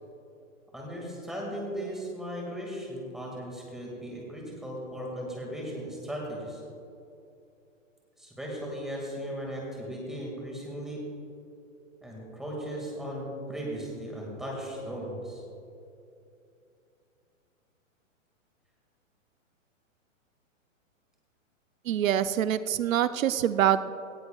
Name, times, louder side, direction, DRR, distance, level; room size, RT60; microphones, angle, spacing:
voice 1, 0.7-6.6 8.2-11.0 12.0-15.4, equal, ahead, -3 dB, 1.9 m, -37 dB
voice 2, 21.9-23.9, right 10 dB, 80° right, 12 dB, 0.6 m, -25 dB
18.0 x 15.5 x 2.3 m, 2.7 s
hypercardioid pair, 165°, 39 cm